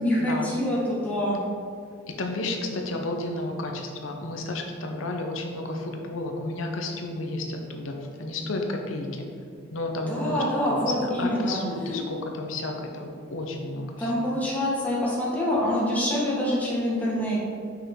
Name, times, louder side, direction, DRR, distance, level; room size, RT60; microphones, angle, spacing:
voice 1, 0.0-1.4 10.1-11.6 11.8-12.0 14.0-17.4, left 1 dB, 10° left, -6 dB, 1.4 m, -26 dB
voice 2, 2.1-9.3 9.7-14.3, left 2 dB, 85° left, 3 dB, 0.7 m, -32 dB
5.7 x 4.5 x 3.7 m, 2.2 s
head